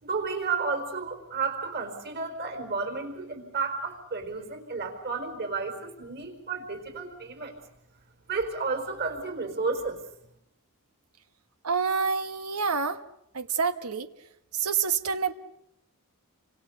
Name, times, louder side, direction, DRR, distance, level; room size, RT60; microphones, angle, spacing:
voice 1, 0.0-7.6 8.3-10.0, right 4 dB, 45° right, 6 dB, 4.7 m, -32 dB
voice 2, 11.6-13.0 13.3-14.1 14.5-15.3, right 5 dB, 90° right, 10 dB, 1.3 m, -27 dB
29.0 x 25.5 x 6.8 m, 0.76 s
head